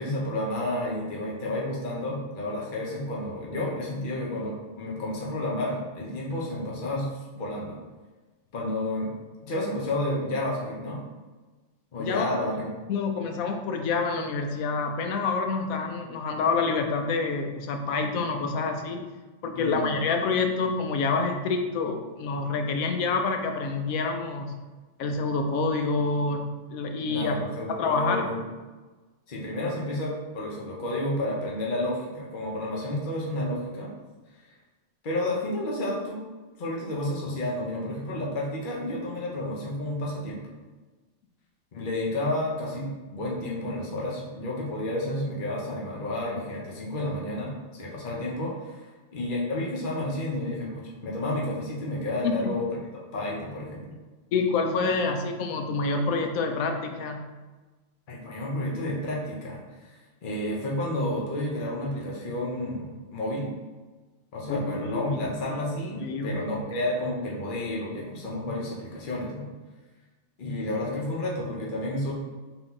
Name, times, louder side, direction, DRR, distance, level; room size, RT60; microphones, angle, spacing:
voice 1, 0.0-7.1 7.3-7.8 8.5-9.1 9.4-11.0 11.9-12.7 19.5-19.9 27.1-28.4 29.3-33.9 35.0-36.2 36.6-40.4 41.7-52.7 53.1-54.0 58.1-63.5 64.3-69.5 70.4-72.1, left 1 dB, 40° left, -3 dB, 1.0 m, -31 dB
voice 2, 12.9-19.0 19.4-24.6 25.0-27.4 27.7-28.3 52.2-52.5 54.3-57.2 64.5-65.2 66.0-66.4, left 4 dB, 85° left, 4 dB, 1.0 m, -27 dB
3.9 x 2.8 x 3.9 m, 1.3 s
omnidirectional pair, 1.4 m